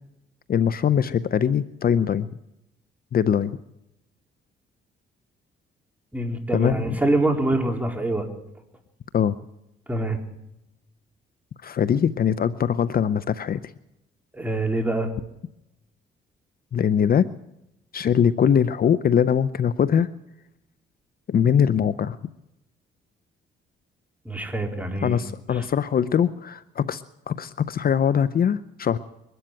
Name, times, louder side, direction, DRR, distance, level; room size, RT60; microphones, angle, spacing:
voice 1, 0.5-2.3 3.1-3.6 6.5-6.9 9.1-9.4 11.6-13.7 16.7-17.3 17.9-20.1 21.3-22.2 25.0-29.0, left 8 dB, 50° left, 15 dB, 0.7 m, -22 dB
voice 2, 6.1-8.3 9.9-10.2 14.3-15.1 24.2-25.2 25.5-25.7, right 2 dB, 10° right, 3 dB, 4.0 m, -25 dB
23.0 x 12.5 x 9.1 m, 0.87 s
cardioid pair, 90°, 20 cm